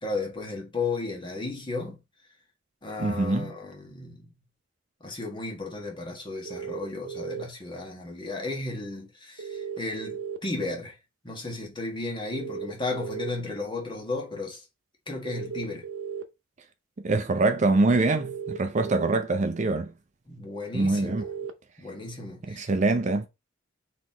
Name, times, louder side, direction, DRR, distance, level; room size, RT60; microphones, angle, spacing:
voice 1, 0.0-2.0 2.8-4.2 5.0-11.0 11.2-14.6 15.1-15.9 20.3-21.3 21.8-22.7, left 3 dB, 25° left, 1.4 m, -34 dB
voice 2, 3.0-3.5 17.0-19.9 20.7-21.2 22.5-23.3, right 3 dB, 35° right, 0.5 m, -24 dB
sound 1, 6.4-7.4 9.4-10.4 12.3-13.3 15.2-16.2 18.2-19.2 21.1-21.5, right 7 dB, 90° right, 0.7 m, -35 dB
4.1 x 2.9 x 4.0 m
head